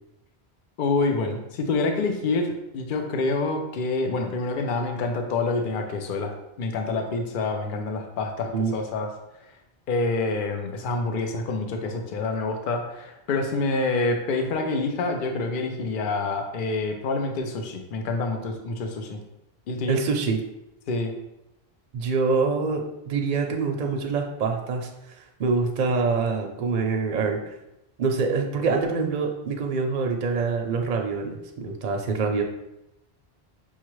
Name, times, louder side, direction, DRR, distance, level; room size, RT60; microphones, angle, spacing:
voice 1, 0.8-9.1 9.9-19.2 19.7-20.0 20.9-21.1, left 3 dB, 60° left, 4 dB, 0.7 m, -27 dB
voice 2, 19.9-20.4 21.9-24.9 25.4-27.6 28.0-32.4, right 4 dB, 55° right, 3 dB, 0.6 m, -25 dB
5.6 x 2.4 x 3.0 m, 0.88 s
omnidirectional pair, 1.1 m